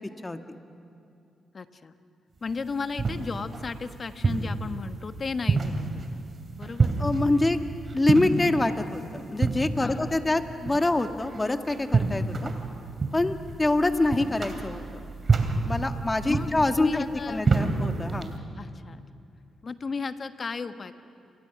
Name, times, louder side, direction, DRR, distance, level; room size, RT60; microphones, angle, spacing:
voice 1, 0.2-0.6 7.0-7.6 7.9-12.5 13.1-15.0 15.6-18.3, left 2 dB, 25° left, 6 dB, 1.8 m, -25 dB
voice 2, 1.5-1.9 2.4-6.2 6.6-6.9 9.8-10.1 16.2-17.6 18.6-19.0 19.6-20.9, left 4 dB, 45° left, 9 dB, 1.3 m, -34 dB
sound 1, 2.5-18.4, right 3 dB, 45° right, 3.1 m, -29 dB
28.5 x 24.5 x 6.1 m, 2.6 s
hypercardioid pair, 45°, 0 cm